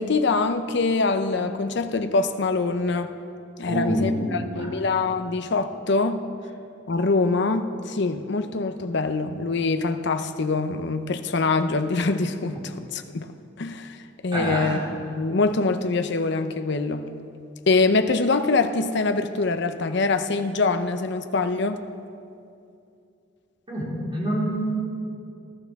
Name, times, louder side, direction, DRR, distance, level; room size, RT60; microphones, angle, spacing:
voice 1, 0.0-3.1 3.6-6.2 6.9-13.3 13.6-14.0 14.2-17.1 17.7-21.8, left 3 dB, 60° left, 9 dB, 0.6 m, -24 dB
voice 2, 3.7-4.7 14.3-14.8 23.7-24.8, right 1 dB, 25° right, -7 dB, 4.1 m, -26 dB
20.0 x 12.5 x 3.6 m, 2.5 s
head